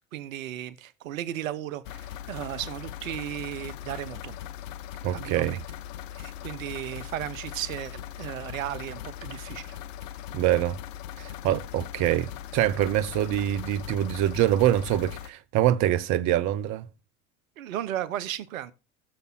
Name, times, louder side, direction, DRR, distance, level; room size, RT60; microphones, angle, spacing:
voice 1, 0.1-4.4 5.1-5.6 6.2-9.8 17.6-18.7, right 12 dB, 70° right, 0.8 m, -35 dB
sound 1, 1.8-15.3, left 11 dB, 65° left, 0.8 m, -40 dB
voice 2, 5.0-5.6 10.3-10.8 11.2-16.9, right 12 dB, 45° right, 0.7 m, -25 dB
20.0 x 6.7 x 2.4 m
hypercardioid pair, 75°, 41 cm